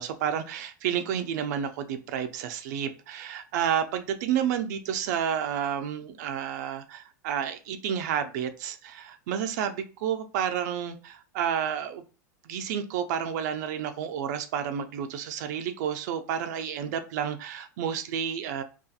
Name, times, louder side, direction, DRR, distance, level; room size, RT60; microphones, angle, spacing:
voice 1, 0.0-12.0 12.4-18.6, right 8 dB, 70° right, 0.3 m, -30 dB
2.6 x 2.3 x 2.3 m
hypercardioid pair, 105°, 10 cm